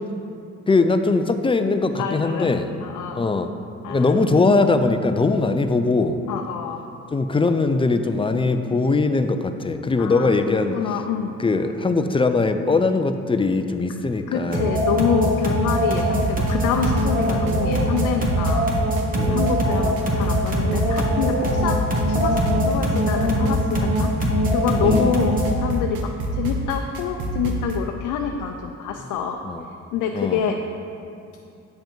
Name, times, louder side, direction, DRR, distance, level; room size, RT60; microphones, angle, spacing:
voice 1, 0.7-2.7 3.1-3.5 3.9-6.2 7.1-11.0 11.4-14.8 19.2-19.5 24.8-25.1 29.4-29.6 30.1-30.4, left 3 dB, 20° left, 8 dB, 0.4 m, -21 dB
voice 2, 2.0-2.5 2.8-3.3 3.8-4.3 6.3-6.8 10.0-11.3 14.3-18.7 19.3-21.8 22.1-24.1 24.5-29.4 29.9-30.6, left 7 dB, 85° left, 3 dB, 0.5 m, -26 dB
sound 1, 14.5-25.6, equal, 30° right, 1.5 m, -22 dB
sound 2, 15.7-27.8, right 1 dB, 80° right, 1.0 m, -29 dB
9.0 x 5.4 x 4.5 m, 2.5 s
cardioid pair, 90°, 30 cm